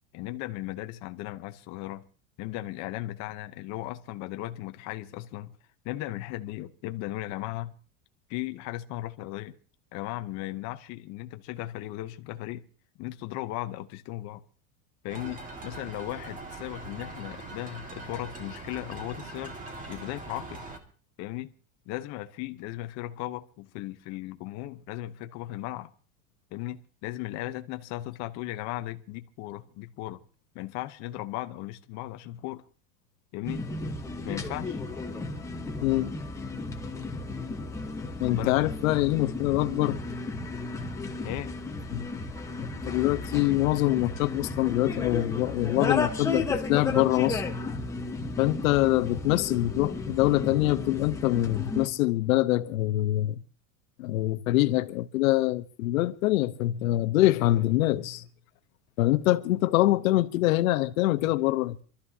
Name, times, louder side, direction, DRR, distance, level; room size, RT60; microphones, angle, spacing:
voice 1, 0.1-2.0 2.4-5.5 5.8-7.7 8.3-9.6 9.9-12.6 13.0-14.4 15.0-19.5 19.9-20.6 21.2-21.5 21.9-25.9 26.5-30.2 30.5-32.6 33.3-33.6 34.2-34.8 38.2-38.6 41.2-41.5, left 16 dB, 40° left, 0.9 m, -36 dB
sound 1, 15.1-20.8, right 2 dB, 20° right, 1.9 m, -42 dB
sound 2, 33.4-51.9, left 3 dB, 5° left, 1.3 m, -34 dB
voice 2, 35.8-36.1 38.2-40.0 41.9-42.1 42.6-47.4 48.4-53.4 54.0-58.2 59.0-61.8, left 16 dB, 80° left, 1.0 m, -25 dB
27.0 x 13.0 x 2.8 m
supercardioid pair, 150°, 41 cm